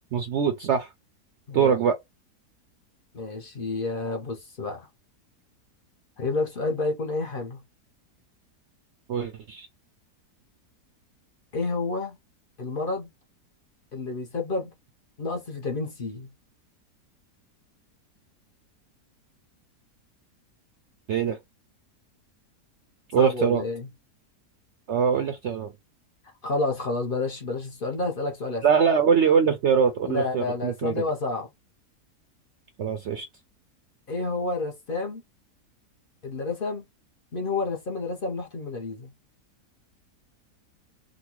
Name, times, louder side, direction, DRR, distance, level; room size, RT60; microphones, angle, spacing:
voice 1, 0.1-0.9 1.5-2.0 9.1-9.7 21.1-21.4 23.1-23.6 24.9-25.7 28.6-31.0 32.8-33.3, right 6 dB, 75° right, 0.6 m, -23 dB
voice 2, 3.1-4.9 6.2-7.6 11.5-12.2 12.6-13.1 13.9-14.7 15.2-16.3 23.2-23.9 26.4-28.6 30.0-31.5 34.1-35.2 36.2-36.8 37.3-39.1, left 3 dB, 50° left, 0.6 m, -29 dB
3.9 x 2.2 x 2.9 m
omnidirectional pair, 1.7 m